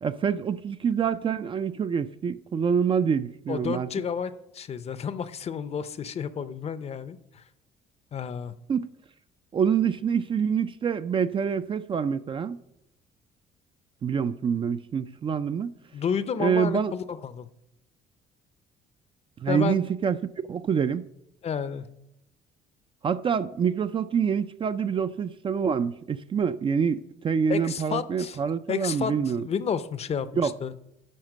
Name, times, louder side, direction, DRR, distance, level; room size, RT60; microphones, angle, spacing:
voice 1, 0.0-3.9 8.7-8.9 9.5-12.6 14.0-15.7 16.4-16.9 19.4-20.2 20.5-21.1 23.0-29.4 30.4-30.5, right 7 dB, 30° right, 0.3 m, -26 dB
voice 2, 3.5-7.4 8.1-8.5 15.9-17.5 19.5-19.8 21.4-21.9 27.5-28.4 28.7-30.7, left 7 dB, 40° left, 0.6 m, -31 dB
11.0 x 4.3 x 6.4 m
cardioid pair, 110°, 17 cm